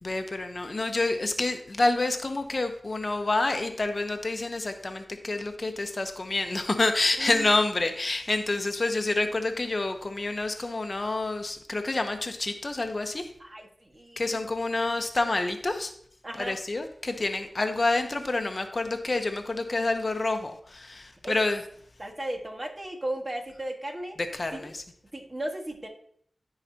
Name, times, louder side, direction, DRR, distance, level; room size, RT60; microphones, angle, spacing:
voice 1, 0.0-13.3 14.2-15.9 16.4-21.6 24.3-24.8, left 2 dB, 45° left, 6 dB, 0.8 m, -28 dB
voice 2, 13.4-14.4 16.2-16.6 21.2-21.4 22.0-24.2 24.5-24.7 25.1-25.9, right 1 dB, 35° right, 2 dB, 1.6 m, -35 dB
14.5 x 4.9 x 2.8 m, 0.62 s
wide cardioid pair, 70°, 0 cm